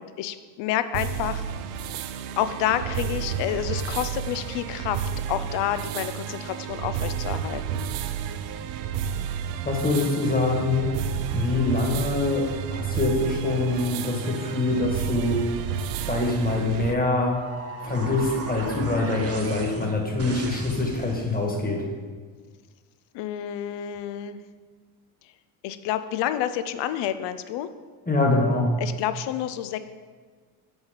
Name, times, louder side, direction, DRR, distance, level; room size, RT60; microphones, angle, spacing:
voice 1, 0.0-1.4 2.4-7.8 23.1-24.4 25.6-27.7 28.8-29.8, left 11 dB, 60° left, 12 dB, 0.6 m, -29 dB
sound 1, 0.9-16.9, right 8 dB, 70° right, 0.6 m, -31 dB
voice 2, 9.6-10.9 11.3-15.4 16.0-17.4 17.8-21.8 28.1-28.7, left 2 dB, 20° left, 1 dB, 1.6 m, -24 dB
sound 2, 16.9-21.5, right 3 dB, 30° right, 0.9 m, -37 dB
6.9 x 4.0 x 5.2 m, 1.5 s
hypercardioid pair, 65°, 49 cm